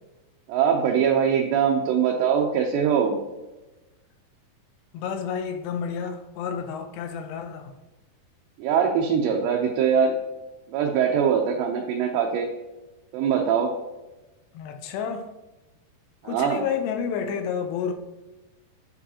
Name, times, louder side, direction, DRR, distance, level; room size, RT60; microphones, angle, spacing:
voice 1, 0.5-3.2 8.6-10.2 10.7-12.5 13.1-13.7 16.2-16.7, right 7 dB, 85° right, 1 dB, 2.8 m, -22 dB
voice 2, 4.9-7.7 14.5-15.3 16.2-17.9, left 7 dB, 80° left, 6 dB, 2.7 m, -30 dB
8.8 x 4.7 x 2.8 m, 1.1 s
omnidirectional pair, 4.9 m